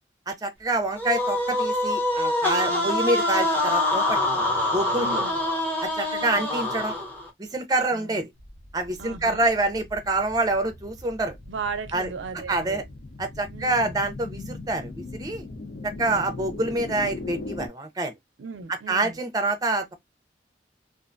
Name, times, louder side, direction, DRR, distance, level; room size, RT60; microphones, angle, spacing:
voice 1, 0.3-4.2 4.7-5.2 5.8-6.9 7.4-8.3 8.7-11.4 11.9-12.1 12.5-12.8 13.2-15.4 15.8-18.1 18.9-19.9, right 2 dB, 20° right, 0.5 m, -26 dB
sound 1, 1.0-7.3, left 1 dB, 10° left, 0.8 m, -25 dB
voice 2, 4.9-5.4 6.3-6.4 7.9-8.3 9.0-9.5 11.5-12.8 13.5-14.0 16.0-16.2 18.4-19.2, right 5 dB, 90° right, 0.5 m, -37 dB
sound 2, 8.4-17.7, left 2 dB, 60° left, 0.5 m, -40 dB
2.4 x 2.2 x 2.5 m
head